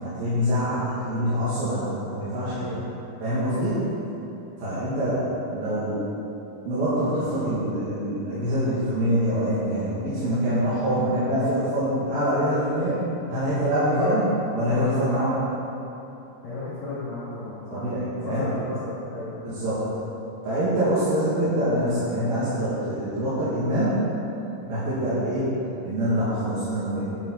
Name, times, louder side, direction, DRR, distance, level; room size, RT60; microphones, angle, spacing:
voice 1, 0.0-2.7 3.2-3.8 4.6-6.1 6.7-13.0 13.3-14.2 14.5-15.3 17.7-18.4 19.4-19.8 20.4-24.0 24.6-25.5 25.8-27.0, equal, 85° right, -13 dB, 4.1 m, -25 dB
voice 2, 2.4-3.0 13.8-14.2 14.8-15.0 16.4-17.9 18.2-19.9, left 2 dB, 70° left, -13 dB, 4.1 m, -34 dB
10.5 x 10.5 x 4.0 m, 2.9 s
omnidirectional pair, 4.0 m